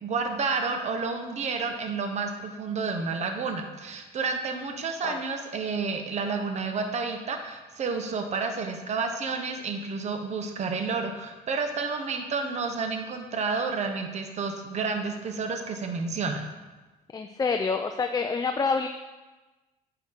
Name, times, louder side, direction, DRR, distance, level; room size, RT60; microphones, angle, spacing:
voice 1, 0.0-16.4, right 4 dB, 40° right, 5 dB, 1.0 m, -30 dB
voice 2, 17.1-18.9, left 4 dB, 20° left, 5 dB, 0.4 m, -27 dB
9.2 x 7.0 x 3.7 m, 1.2 s
cardioid pair, 110°, 17 cm